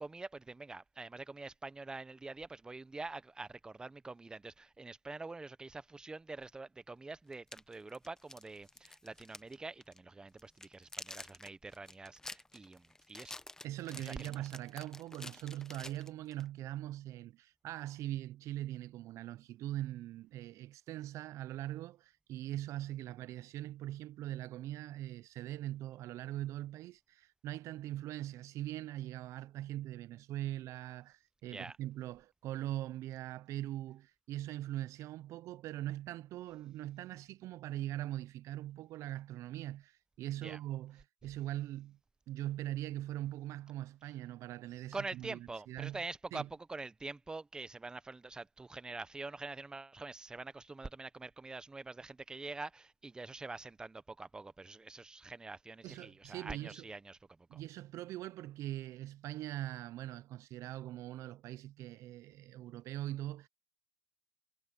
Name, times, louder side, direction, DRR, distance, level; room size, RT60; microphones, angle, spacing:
voice 1, 0.0-13.4 14.0-14.3 31.5-31.8 40.4-40.6 44.9-57.2 57.5-57.6, right 3 dB, 10° right, 0.9 m, -45 dB
sound 1, 6.5-6.6 7.3-9.5 9.8-10.0 10.4-16.5, left 2 dB, 10° left, 1.2 m, -49 dB
voice 2, 13.6-42.0 42.3-45.4 45.7-46.0 46.3-46.5 55.8-56.9 57.5-63.5, right 14 dB, 45° right, 0.6 m, -41 dB
supercardioid pair, 110°, 7 cm